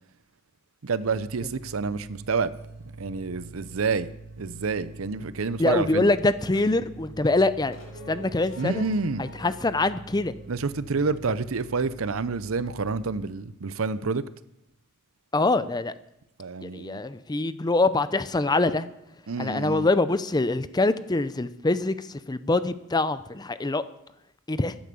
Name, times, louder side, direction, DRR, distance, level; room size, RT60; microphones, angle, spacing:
voice 1, 0.8-2.5 3.0-4.1 4.4-6.1 8.6-9.3 10.5-14.2 16.4-17.0 19.3-19.9, right 4 dB, 80° right, 0.7 m, -28 dB
sound 1, 1.0-13.2, right 2 dB, 50° right, 3.0 m, -45 dB
sound 2, 2.5-2.6 3.8-3.9 6.2-6.7 7.3-9.6, left 1 dB, 75° left, 6.0 m, -47 dB
voice 2, 5.6-7.8 8.1-8.9 9.2-10.3 15.3-15.9 16.6-18.9 19.4-23.8 24.5-24.8, left 2 dB, 20° left, 0.6 m, -24 dB
13.5 x 10.5 x 6.9 m
head